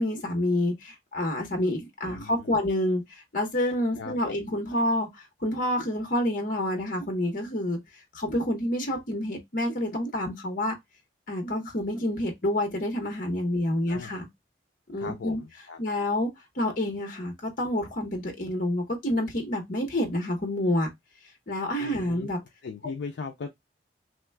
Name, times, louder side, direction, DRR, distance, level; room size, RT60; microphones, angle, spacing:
voice 1, 0.0-5.1 5.4-7.8 8.1-10.7 11.3-14.3 14.9-15.4 15.8-16.3 16.6-20.9 21.5-22.4, left 1 dB, 50° left, 0.9 m, -28 dB
voice 2, 2.1-2.6 4.0-4.3 13.9-14.1 15.0-15.8 21.8-22.3 22.6-23.5, left 5 dB, 80° left, 0.4 m, -38 dB
3.1 x 2.3 x 3.2 m
head